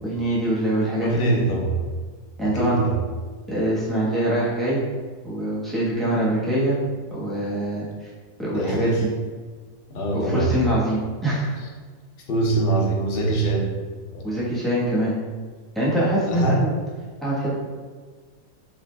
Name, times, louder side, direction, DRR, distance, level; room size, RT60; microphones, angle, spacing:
voice 1, 0.0-1.4 2.4-2.8 3.5-4.8 5.2-6.8 7.1-8.1 8.4-8.9 10.3-11.6 14.2-15.2 15.7-16.7 17.2-17.5, right 1 dB, ahead, -8 dB, 0.8 m, -24 dB
voice 2, 1.0-1.8 2.4-3.0 8.5-9.0 9.9-10.5 12.3-13.7 14.1-14.4 16.3-16.6, right 2 dB, 50° left, -2 dB, 0.7 m, -23 dB
6.4 x 2.5 x 2.2 m, 1.5 s
omnidirectional pair, 1.7 m